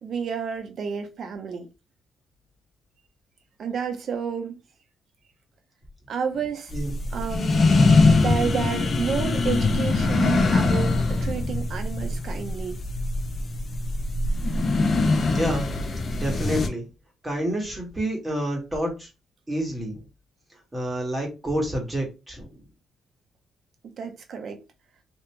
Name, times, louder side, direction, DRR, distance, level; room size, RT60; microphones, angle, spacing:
voice 1, 0.0-1.7 3.6-4.6 6.1-6.7 7.1-7.6 8.1-12.8 23.8-24.6, right 6 dB, 60° right, 0.9 m, -30 dB
sound 1, 6.7-16.7, left 3 dB, 40° left, 0.6 m, -22 dB
voice 2, 6.7-7.2 15.2-15.8 16.1-16.9 17.2-19.1 19.5-20.0 20.7-22.6, right 1 dB, 20° right, 1.7 m, -29 dB
3.1 x 2.9 x 3.3 m
cardioid pair, 90°, 0 cm